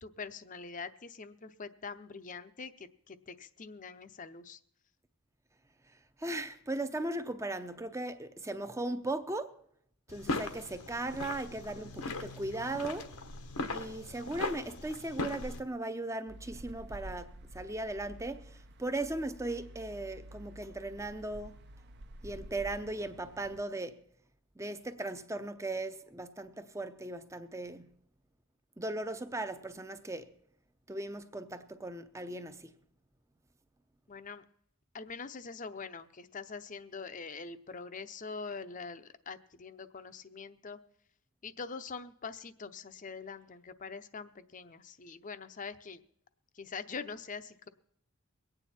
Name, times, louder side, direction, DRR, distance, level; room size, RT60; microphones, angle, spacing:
voice 1, 0.0-4.6 34.1-34.4 34.9-40.8 41.4-46.0 46.5-47.7, left 4 dB, 35° left, 0.7 m, -44 dB
voice 2, 6.2-9.6 10.1-13.1 13.7-21.6 22.2-24.0 24.6-28.0 28.8-30.3 30.9-32.7, right 2 dB, 15° right, 0.6 m, -38 dB
sound 1, 10.1-15.6, left 3 dB, 85° left, 1.3 m, -39 dB
sound 2, 16.3-23.6, right 1 dB, 50° right, 0.7 m, -50 dB
22.5 x 9.1 x 4.3 m
head